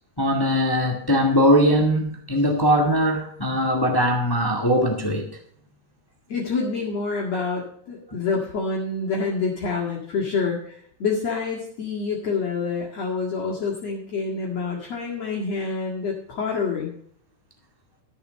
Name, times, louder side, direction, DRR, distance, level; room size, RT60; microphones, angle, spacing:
voice 1, 0.2-5.3, equal, 20° left, 2 dB, 0.6 m, -20 dB
voice 2, 6.3-16.9, left 4 dB, 55° left, -3 dB, 2.9 m, -27 dB
13.5 x 7.1 x 5.2 m, 0.62 s
omnidirectional pair, 3.7 m